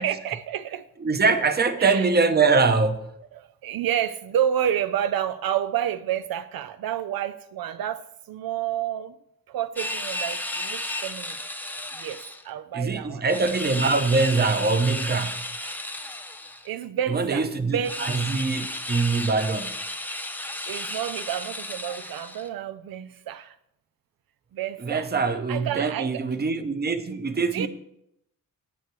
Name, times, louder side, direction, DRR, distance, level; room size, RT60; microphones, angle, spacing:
voice 1, 0.0-0.9 1.8-2.1 3.4-9.1 9.5-11.4 11.9-13.2 16.6-18.1 20.6-23.6 24.5-25.1 25.5-26.2 27.5-27.7, right 10 dB, 85° right, 0.5 m, -29 dB
voice 2, 1.0-3.1 11.8-11.9 12.7-15.4 17.1-19.8 24.8-27.7, right 4 dB, 30° right, 0.8 m, -23 dB
sound 1, 9.8-12.4 13.3-16.7 17.8-22.5, left 1 dB, 5° left, 0.6 m, -33 dB
17.0 x 6.7 x 3.1 m
wide cardioid pair, 125°, 35 cm